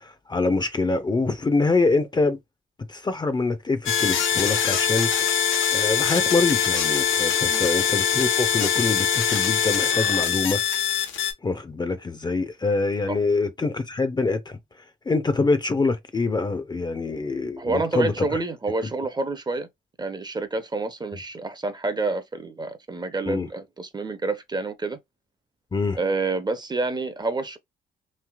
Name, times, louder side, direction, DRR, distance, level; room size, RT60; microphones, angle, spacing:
voice 1, 0.0-2.4 2.9-5.1 5.7-10.6 11.4-14.6 15.1-18.3 23.3-23.5 25.7-26.0, left 3 dB, 20° left, 0.5 m, -25 dB
sound 1, 3.9-11.3, left 8 dB, 70° left, 0.9 m, -23 dB
voice 2, 17.6-19.7 20.0-25.0 25.9-27.6, right 3 dB, 20° right, 0.6 m, -28 dB
3.2 x 2.8 x 2.2 m
cardioid pair, 90°, 20 cm